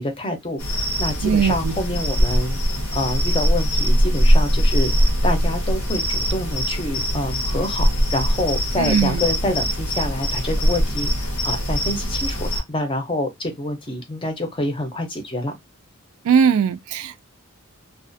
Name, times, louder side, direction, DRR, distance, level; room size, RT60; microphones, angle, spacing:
voice 1, 0.0-2.6 2.9-15.5, left 1 dB, 25° left, 0.6 m, -27 dB
sound 1, 0.6-12.6, equal, 90° left, 0.9 m, -21 dB
voice 2, 1.2-1.8 8.8-9.2 16.2-17.2, right 7 dB, 80° right, 0.3 m, -19 dB
2.4 x 2.3 x 2.5 m
head